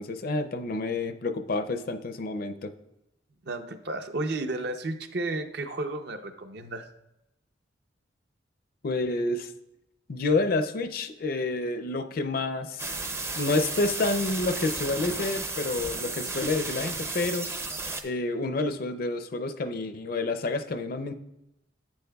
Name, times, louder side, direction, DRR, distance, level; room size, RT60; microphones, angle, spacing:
voice 1, 0.0-2.7 8.8-9.5 10.1-12.8 13.3-17.5 18.0-21.2, left 2 dB, 50° left, 9 dB, 0.5 m, -29 dB
voice 2, 3.4-6.9, right 2 dB, 60° right, 7 dB, 0.7 m, -32 dB
sound 1, 12.8-18.0, right 3 dB, 15° right, 0.5 m, -33 dB
10.5 x 8.9 x 2.3 m, 0.87 s
head